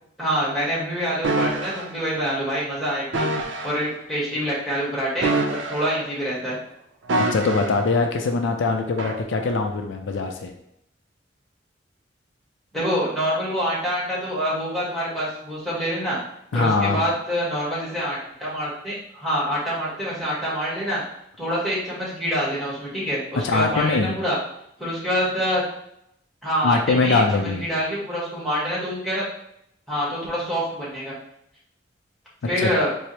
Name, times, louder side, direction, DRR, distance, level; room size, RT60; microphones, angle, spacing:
voice 1, 0.2-3.3 3.6-6.6 12.7-16.2 16.5-21.0 21.4-24.4 24.8-25.6 26.4-29.2 29.9-31.1 32.4-32.9, equal, ahead, -8 dB, 1.3 m, -26 dB
sound 1, 1.2-1.9 3.1-3.8 5.2-6.1 7.1-7.8 9.0-9.2, right 2 dB, 75° right, 0.5 m, -25 dB
voice 2, 7.2-10.5 16.5-17.0 23.4-24.1 26.6-27.6 32.6-32.7, left 3 dB, 80° left, 4 dB, 0.4 m, -22 dB
4.7 x 2.0 x 2.8 m, 0.76 s
head